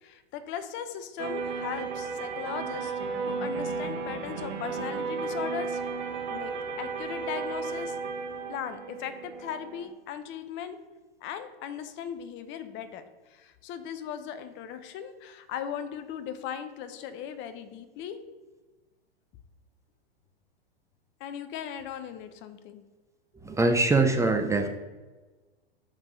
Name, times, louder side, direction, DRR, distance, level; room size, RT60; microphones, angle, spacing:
voice 1, 0.0-2.9 3.2-5.8 6.3-6.5 6.8-8.0 8.5-10.8 11.2-13.0 13.3-18.2 21.2-22.8, left 8 dB, 40° left, 10 dB, 0.8 m, -38 dB
sound 1, 1.2-9.9, right 4 dB, 55° right, 1.2 m, -34 dB
voice 2, 23.4-24.7, right 3 dB, 10° right, 5 dB, 0.6 m, -23 dB
5.5 x 5.2 x 6.2 m, 1.2 s
hypercardioid pair, 110°, 31 cm